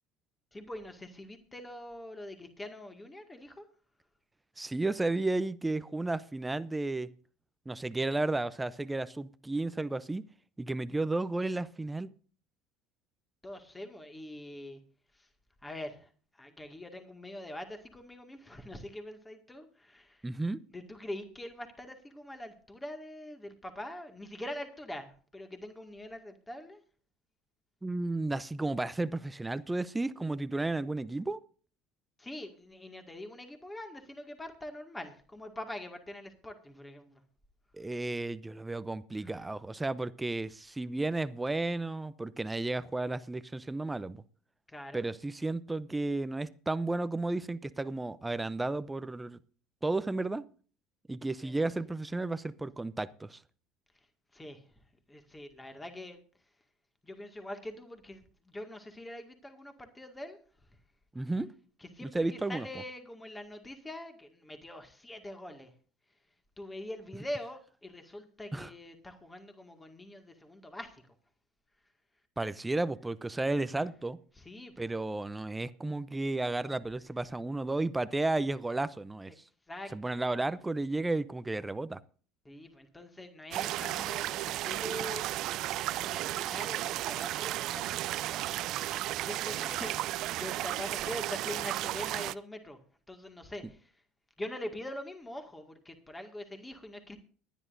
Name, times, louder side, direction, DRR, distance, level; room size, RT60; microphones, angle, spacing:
voice 1, 0.5-3.7 13.4-14.8 15.2-15.3 15.6-16.1 16.4-20.2 20.7-26.8 32.2-37.2 39.2-39.4 44.7-45.1 51.4-51.6 54.3-54.6 55.1-56.2 57.0-60.4 61.8-65.7 66.6-71.0 74.4-74.9 79.7-79.9 82.5-85.3 85.9-88.1 89.2-92.8 93.1-93.9 94.4-97.2, left 1 dB, 15° left, 5 dB, 1.9 m, -44 dB
voice 2, 4.6-7.1 7.7-10.2 10.6-12.1 20.2-20.6 27.8-31.4 37.7-44.2 44.9-49.4 49.8-50.4 51.1-53.4 61.1-61.5 62.0-62.7 68.5-68.7 72.4-74.2 74.8-79.3 79.9-82.0, right 2 dB, 10° right, 15 dB, 0.6 m, -33 dB
sound 1, 83.5-92.3, right 15 dB, 60° right, 0.5 m, -34 dB
23.5 x 10.5 x 2.6 m, 0.41 s
supercardioid pair, 95°, 0 cm